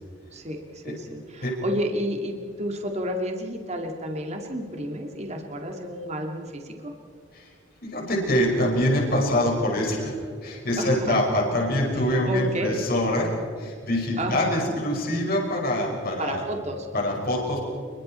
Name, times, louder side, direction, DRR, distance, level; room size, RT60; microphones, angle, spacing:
voice 1, 0.3-6.9 10.8-11.2 12.2-12.8 14.2-14.7 16.2-16.9, equal, 35° right, 3 dB, 2.1 m, -31 dB
voice 2, 7.8-13.3 13.6-16.4 16.9-17.6, left 1 dB, 50° left, 0 dB, 5.3 m, -25 dB
29.5 x 22.0 x 4.3 m, 2.2 s
head